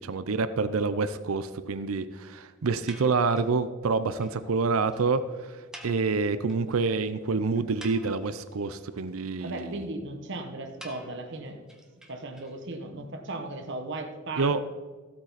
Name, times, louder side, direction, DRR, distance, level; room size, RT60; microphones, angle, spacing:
voice 1, 0.0-5.2 5.5-9.8 14.4-14.6, right 4 dB, 85° right, 13 dB, 0.6 m, -27 dB
sound 1, 2.9-3.6 3.9-4.0 4.2-4.3 4.6-4.7 4.9-5.0 5.7-6.7 7.1-7.2 7.6-8.5 10.8-12.8, equal, 5° right, 1.2 m, -48 dB
voice 2, 9.4-11.6 12.1-14.6, right 2 dB, 60° right, 5 dB, 1.2 m, -36 dB
15.5 x 8.5 x 4.1 m, 1.4 s
head